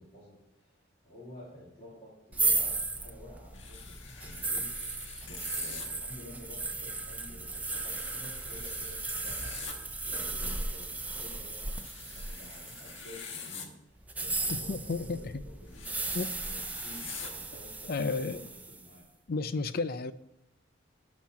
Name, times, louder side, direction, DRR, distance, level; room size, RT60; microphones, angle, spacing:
voice 1, 0.0-19.0, left 1 dB, 30° left, -10 dB, 3.2 m, -51 dB
sound 1, 2.3-13.3 14.0-18.9, right 3 dB, 10° right, 0.5 m, -36 dB
sound 2, 3.5-5.9 7.6-9.7 11.7-13.7 15.7-17.3, left 6 dB, 85° left, 1.4 m, -46 dB
voice 2, 14.7-15.3 16.1-16.3 17.9-18.4 19.3-20.1, left 3 dB, 50° left, 14 dB, 0.5 m, -32 dB
12.0 x 4.3 x 5.8 m, 0.90 s
head